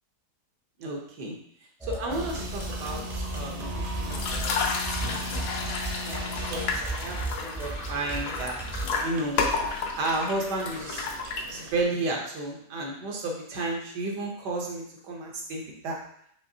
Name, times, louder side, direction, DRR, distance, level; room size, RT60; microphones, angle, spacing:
voice 1, 0.8-1.3 1.8-5.2 6.0-9.4 10.0-11.1 11.5-16.0, right 2 dB, 80° right, 0 dB, 1.5 m, -33 dB
sound 1, 1.8-8.9, right 2 dB, 5° right, 0.5 m, -35 dB
sound 2, 2.1-11.7, equal, 65° right, 1.1 m, -40 dB
sound 3, 4.1-11.8, left 4 dB, 75° left, 1.1 m, -32 dB
5.4 x 3.1 x 2.7 m, 0.69 s
omnidirectional pair, 1.8 m